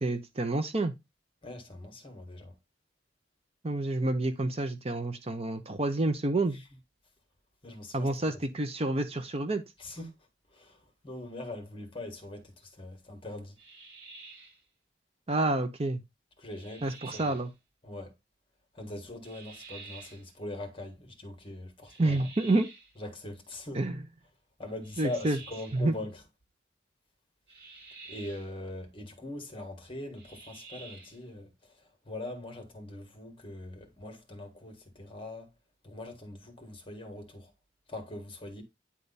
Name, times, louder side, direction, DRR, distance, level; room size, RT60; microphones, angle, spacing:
voice 1, 0.0-0.9 3.6-6.6 7.9-9.6 15.3-16.0 16.8-17.5 22.0-22.7 23.7-24.0 25.0-25.4 25.7-25.9, right 2 dB, 35° right, 0.7 m, -28 dB
voice 2, 1.4-2.5 7.6-8.4 9.8-10.1 10.5-13.5 16.4-17.2 17.8-18.1 18.7-22.2 23.0-23.8 24.6-26.2 28.1-31.5 32.1-35.5 35.8-37.5 37.9-38.6, left 1 dB, 30° left, 1.7 m, -42 dB
sound 1, 13.6-14.6 16.5-17.5 19.2-20.3 21.9-22.9 24.8-25.9 27.5-28.5 30.1-31.2, right 3 dB, 65° right, 4.9 m, -50 dB
9.8 x 3.5 x 4.1 m
head